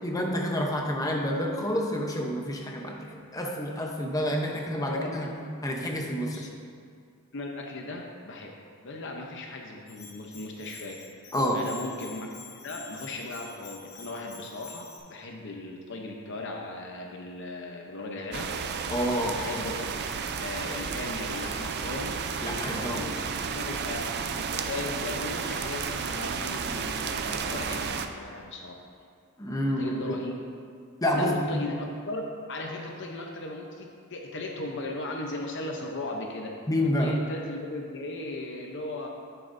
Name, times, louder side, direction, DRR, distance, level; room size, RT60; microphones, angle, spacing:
voice 1, 0.0-5.3 5.6-6.5 11.3-11.7 18.9-19.5 22.4-23.1 29.4-30.2 31.0-31.7 36.7-37.2, equal, 15° left, 1 dB, 0.7 m, -28 dB
voice 2, 4.9-5.4 6.3-6.5 7.3-8.5 8.8-10.9 11.5-18.5 19.3-19.9 20.4-22.1 22.7-24.0 24.3-28.8 29.8-30.3 31.1-36.5 37.0-39.1, left 2 dB, 55° left, 1 dB, 0.7 m, -37 dB
Bell, 9.9-15.0, left 5 dB, 85° left, 2.1 m, -47 dB
sound 1, 18.3-28.1, right 6 dB, 50° right, 0.4 m, -32 dB
9.8 x 9.0 x 2.6 m, 2.2 s
head